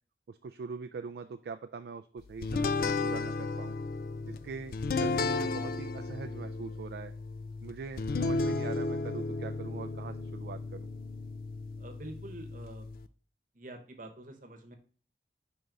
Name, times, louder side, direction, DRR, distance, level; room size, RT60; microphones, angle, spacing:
voice 1, 0.3-3.8 4.2-7.1 7.6-10.9, right 5 dB, 65° right, 7 dB, 0.3 m, -42 dB
sound 1, 2.4-13.1, left 3 dB, 55° left, 0.3 m, -34 dB
voice 2, 11.8-12.9 13.5-14.7, right 1 dB, 50° right, 4 dB, 1.0 m, -46 dB
5.3 x 4.7 x 3.9 m, 0.40 s
head